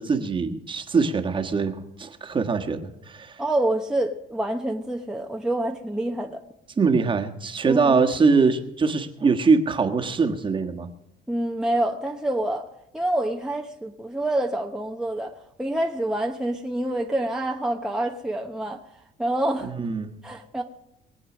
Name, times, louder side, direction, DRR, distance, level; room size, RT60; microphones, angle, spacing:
voice 1, 0.0-3.4 6.8-10.9 19.6-20.1, right 4 dB, 30° right, 1.5 m, -23 dB
voice 2, 3.4-6.4 7.7-8.0 11.3-12.7 12.9-18.8 19.2-19.7 20.2-20.6, right 1 dB, 5° right, 1.0 m, -27 dB
22.0 x 8.1 x 6.2 m
cardioid pair, 110°, 17 cm